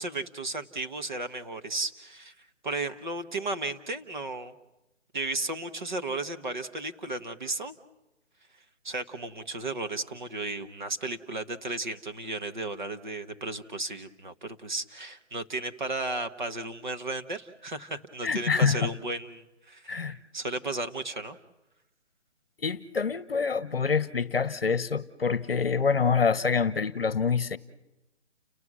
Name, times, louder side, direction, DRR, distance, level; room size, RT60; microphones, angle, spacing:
voice 1, 0.0-4.5 5.1-7.8 8.8-21.4, right 2 dB, 40° right, 8 dB, 1.3 m, -34 dB
voice 2, 18.2-18.9 19.9-20.2 22.6-27.6, left 5 dB, 50° left, 17 dB, 1.0 m, -26 dB
30.0 x 18.5 x 6.2 m, 0.96 s
hypercardioid pair, 180°, 36 cm